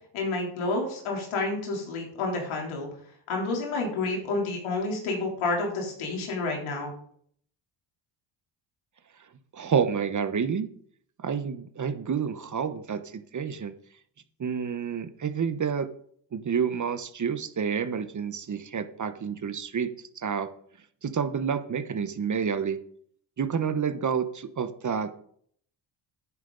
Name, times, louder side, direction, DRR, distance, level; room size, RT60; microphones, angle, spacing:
voice 1, 0.1-2.9 3.3-6.9, left 3 dB, 85° left, 0 dB, 3.6 m, -29 dB
voice 2, 9.5-10.7 11.2-13.7 14.4-15.9 16.3-19.9 20.2-20.5 21.0-22.8 23.4-25.1, right 6 dB, 40° right, 11 dB, 1.1 m, -29 dB
10.5 x 9.5 x 4.0 m, 0.62 s
cardioid pair, 80°, 48 cm